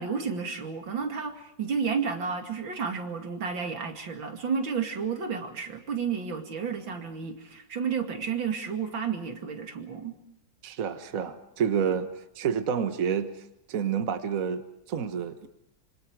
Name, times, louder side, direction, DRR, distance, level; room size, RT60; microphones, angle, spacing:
voice 1, 0.0-10.1, right 6 dB, 90° right, 5 dB, 3.1 m, -31 dB
voice 2, 10.6-12.1 12.3-13.3 13.7-15.5, right 7 dB, 50° right, 9 dB, 1.6 m, -29 dB
26.5 x 25.5 x 4.8 m, 0.81 s
omnidirectional pair, 2.0 m